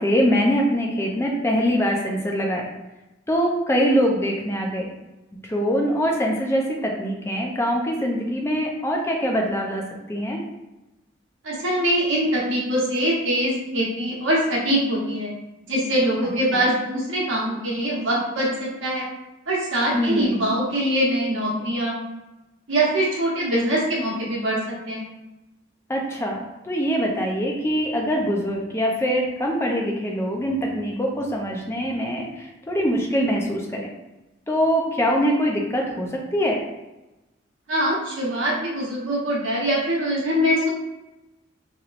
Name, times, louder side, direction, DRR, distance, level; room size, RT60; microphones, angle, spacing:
voice 1, 0.0-2.6 3.3-4.9 5.4-9.8 10.1-10.4 16.5-16.7 19.9-20.4 25.9-33.9 34.5-36.6, equal, 15° left, 0 dB, 0.4 m, -23 dB
voice 2, 11.4-15.3 15.6-19.1 19.5-22.0 22.7-25.0 37.7-40.7, right 1 dB, 80° right, -5 dB, 1.0 m, -23 dB
2.9 x 2.9 x 2.4 m, 1.0 s
head